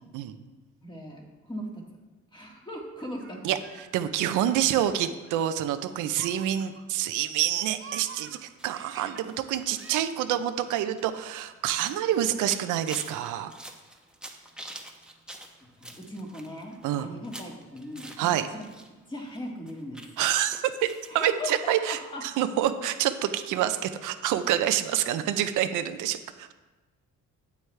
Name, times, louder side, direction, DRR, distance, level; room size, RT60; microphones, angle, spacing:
voice 1, 0.8-1.2 1.5-1.8 2.3-3.4 15.8-18.3 19.1-20.0 21.1-22.5, left 1 dB, 15° left, -1 dB, 2.0 m, -38 dB
Laughter, 3.0-7.1 7.4-9.3 9.7-10.0, right 6 dB, 45° right, 0.8 m, -48 dB
voice 2, 3.4-13.5 16.8-17.1 18.2-18.5 20.2-20.9 21.1-26.5, right 11 dB, 90° right, 9 dB, 0.6 m, -27 dB
sound 1, 8.0-18.9 19.1-21.2 21.6-21.7 22.0-22.1, right 1 dB, 5° right, 1.0 m, -47 dB
8.5 x 8.0 x 3.3 m, 1.2 s
cardioid pair, 90°, 30 cm